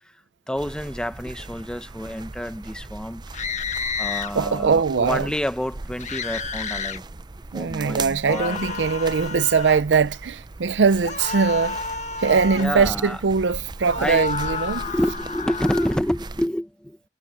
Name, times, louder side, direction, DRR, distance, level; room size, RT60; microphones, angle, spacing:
voice 1, 0.5-3.2 4.0-7.1 7.5-8.7 12.6-13.2 14.0-14.3 14.7-17.0, equal, 5° left, 0.9 m, -28 dB
sound 1, 0.5-16.5, right 3 dB, 25° right, 0.5 m, -38 dB
sound 2, 3.3-4.3 6.0-7.0 8.3-9.9 11.0-12.7 13.8-16.0, left 4 dB, 40° left, 1.6 m, -30 dB
voice 2, 4.3-5.3 7.5-11.8 12.2-14.9, right 5 dB, 85° right, 0.5 m, -21 dB
head